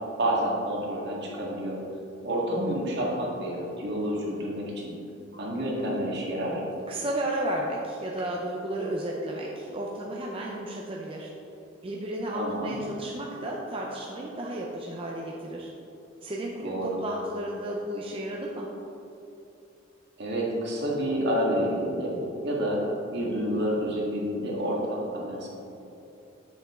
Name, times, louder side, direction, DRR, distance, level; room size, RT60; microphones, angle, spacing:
voice 1, 0.2-1.8 2.2-4.9 5.3-6.6 12.3-12.8 16.6-17.0 20.2-22.1 22.4-22.8 23.1-25.5, equal, 60° right, -4 dB, 1.8 m, -29 dB
voice 2, 6.9-11.3 11.8-15.7 16.2-18.7, right 1 dB, 30° right, -2 dB, 0.6 m, -33 dB
8.2 x 7.1 x 3.7 m, 2.9 s
head